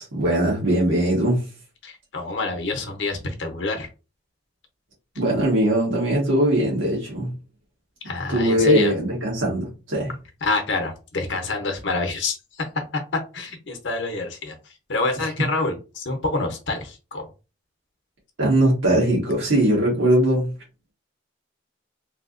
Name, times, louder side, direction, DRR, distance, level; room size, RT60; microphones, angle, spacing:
voice 1, 0.0-1.4 5.2-7.3 8.3-10.1 18.4-20.5, right 1 dB, 85° right, 1.5 m, -20 dB
voice 2, 1.8-3.9 8.0-8.9 10.4-13.0 13.3-14.5 14.9-17.3, left 3 dB, 70° left, 0.7 m, -27 dB
3.2 x 2.7 x 2.5 m
head